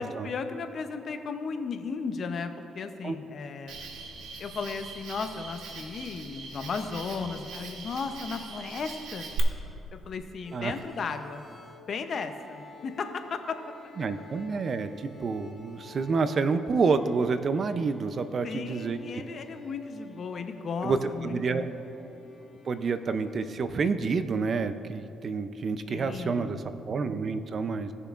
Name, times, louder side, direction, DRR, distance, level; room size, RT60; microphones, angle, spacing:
voice 1, 0.0-3.7 4.4-9.3 9.9-11.4 11.9-13.6 18.4-21.7 25.9-26.6, left 5 dB, 55° left, 7 dB, 0.7 m, -35 dB
Cricket, 3.7-9.4, right 5 dB, 85° right, 1.0 m, -41 dB
sound 1, 10.4-23.6, left 4 dB, 25° left, 1.3 m, -52 dB
voice 2, 14.0-19.0 20.8-21.0 21.2-21.7 22.7-27.9, right 4 dB, 50° right, 11 dB, 0.5 m, -28 dB
17.0 x 6.8 x 2.5 m, 2.8 s
cardioid pair, 90°, 0 cm